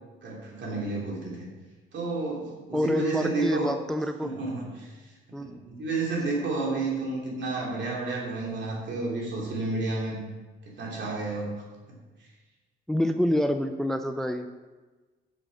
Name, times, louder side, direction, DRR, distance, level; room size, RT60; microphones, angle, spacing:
voice 1, 0.2-1.5 1.9-3.7 4.2-4.9 5.3-10.2 10.7-11.5 11.9-12.0, right 3 dB, 65° right, -3 dB, 2.6 m, -31 dB
voice 2, 2.7-4.3 5.3-5.6 12.9-14.5, left 1 dB, ahead, 8 dB, 0.3 m, -27 dB
6.3 x 6.2 x 5.3 m, 1.3 s
cardioid pair, 90°, 20 cm